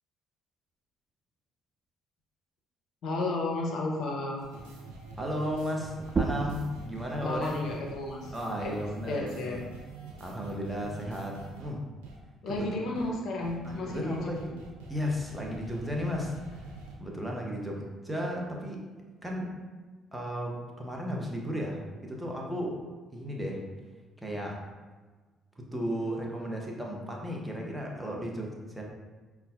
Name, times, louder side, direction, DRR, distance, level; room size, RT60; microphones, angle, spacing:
voice 1, 3.0-4.4 7.2-8.3 8.6-8.8 9.1-9.6 12.4-14.5, left 2 dB, 65° left, -1 dB, 0.6 m, -33 dB
sound 1, 4.4-11.7 12.0-12.2 12.5-12.6 12.9-13.1 13.4-16.9, right 3 dB, 85° right, 0.5 m, -46 dB
voice 2, 5.2-7.5 8.3-9.6 10.2-11.9 12.5-12.7 13.6-14.4 14.9-16.7 17.0-18.8 19.2-19.5 20.1-22.8 23.1-23.6 24.2-24.6 25.7-28.8, equal, 10° right, -1 dB, 0.8 m, -34 dB
sound 2, 6.0-11.2, right 4 dB, 35° right, 0.3 m, -37 dB
5.3 x 2.3 x 2.3 m, 1.3 s
hypercardioid pair, 50°, 0 cm